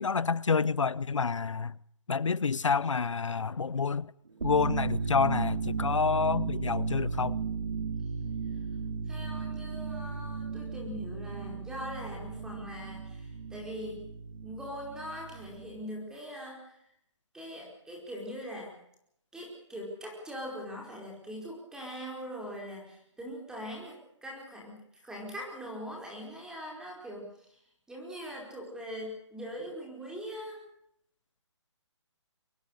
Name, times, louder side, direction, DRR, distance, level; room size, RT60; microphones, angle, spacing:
voice 1, 0.0-1.8 2.1-4.1 4.4-7.4, left 5 dB, 85° left, 0.8 m, -28 dB
sound 1, 4.3-15.8, right 5 dB, 75° right, 5.1 m, -35 dB
voice 2, 9.0-14.0 14.4-16.8 17.3-18.7 19.3-27.6 27.9-30.6, equal, 5° right, 4.9 m, -42 dB
23.5 x 20.5 x 6.6 m
hypercardioid pair, 150°, 16 cm